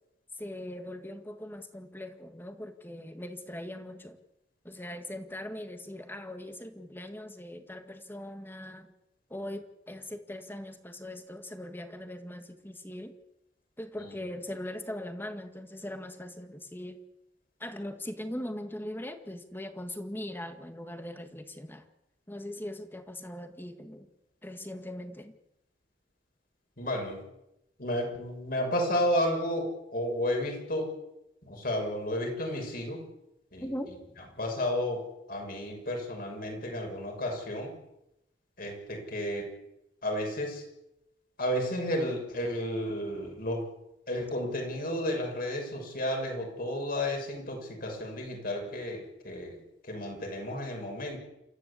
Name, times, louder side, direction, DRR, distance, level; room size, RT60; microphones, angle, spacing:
voice 1, 0.4-4.2 4.6-8.9 9.3-13.1 13.8-17.0 17.6-21.9 22.3-24.1 24.4-25.3 33.6-33.9, left 1 dB, 10° left, 7 dB, 1.9 m, -40 dB
voice 2, 26.8-27.2 27.8-30.9 31.4-33.0 33.5-33.7 34.4-37.7 38.6-39.5 40.0-40.6 41.4-43.7 44.1-51.2, left 1 dB, 50° left, 2 dB, 6.5 m, -32 dB
28.5 x 14.0 x 8.5 m, 0.88 s
head